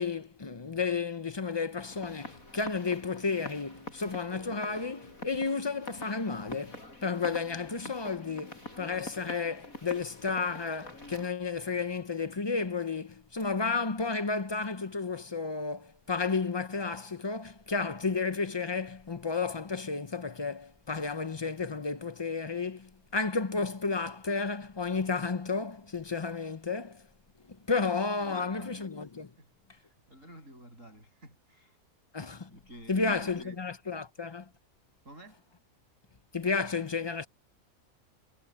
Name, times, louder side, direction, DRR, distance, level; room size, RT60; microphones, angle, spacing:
voice 1, 0.0-27.1 27.5-29.3 32.1-32.6 32.9-34.5 36.3-37.3, left 4 dB, 30° left, 0.5 m, -32 dB
sound 1, 1.8-11.3, left 2 dB, 80° left, 6.9 m, -46 dB
voice 2, 28.2-28.8 29.4-31.8 32.5-33.6 35.0-35.4, right 1 dB, 65° right, 8.5 m, -51 dB
omnidirectional pair, 1.4 m